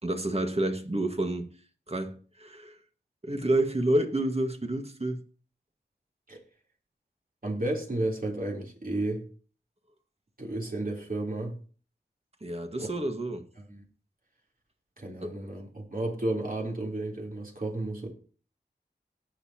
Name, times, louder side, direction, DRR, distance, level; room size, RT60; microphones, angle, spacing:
voice 1, 0.0-1.5 1.9-2.8 3.2-5.2 12.4-13.4 15.2-15.3, right 1 dB, 35° right, 1.8 m, -29 dB
voice 2, 7.4-9.2 10.4-11.6 12.8-12.9 13.7-13.8 15.0-18.1, right 2 dB, 50° right, 3.6 m, -32 dB
18.0 x 6.8 x 3.0 m
wide cardioid pair, 45°, 18 cm